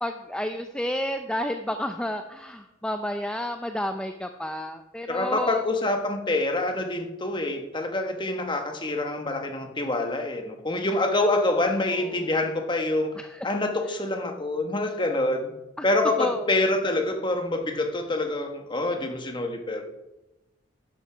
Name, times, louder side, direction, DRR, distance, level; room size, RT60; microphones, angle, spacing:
voice 1, 0.0-5.6 12.2-12.3 13.2-13.5 15.8-15.9 16.2-16.4, left 1 dB, 5° left, 6 dB, 0.5 m, -31 dB
voice 2, 5.1-13.1 13.4-15.5 15.8-19.8, left 2 dB, 25° left, 4 dB, 1.3 m, -26 dB
12.0 x 10.5 x 5.0 m, 0.99 s
head